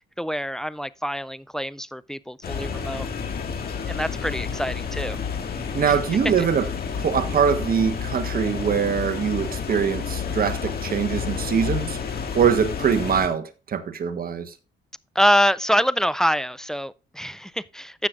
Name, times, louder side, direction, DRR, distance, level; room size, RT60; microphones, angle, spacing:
voice 1, 0.2-3.1 3.9-5.2 5.8-6.0 15.2-18.1, equal, 5° left, 0.3 m, -25 dB
sound 1, 2.4-13.3, left 6 dB, 50° left, 1.9 m, -30 dB
voice 2, 5.7-6.7 7.0-12.0 12.3-14.5, right 7 dB, 50° right, 1.2 m, -23 dB
15.0 x 5.9 x 2.4 m
cardioid pair, 90°, 20 cm